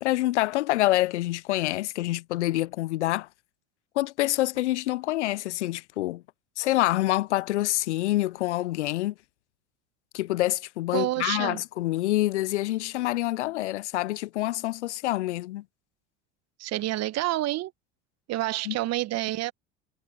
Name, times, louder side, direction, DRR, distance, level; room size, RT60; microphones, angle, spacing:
voice 1, 0.0-3.3 4.0-6.2 6.6-9.1 10.1-15.6 18.7-18.8, left 16 dB, 80° left, 0.5 m, -26 dB
voice 2, 10.9-11.6 16.6-17.7 18.3-19.5, right 16 dB, 50° right, 1.4 m, -28 dB
hypercardioid pair, 75°, 34 cm